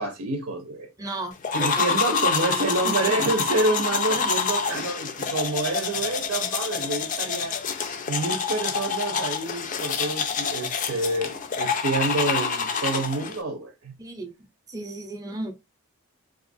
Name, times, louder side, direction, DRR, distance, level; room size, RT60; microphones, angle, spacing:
voice 1, 0.0-0.9 1.5-7.6 8.1-13.9, right 2 dB, 90° right, 0.8 m, -28 dB
voice 2, 1.0-2.1 2.4-3.2 4.1-4.2 14.0-14.3 14.7-15.5, right 2 dB, 15° right, 0.6 m, -35 dB
sound 1, 1.4-13.4, left 6 dB, 35° left, 0.4 m, -27 dB
3.9 x 2.5 x 2.5 m
head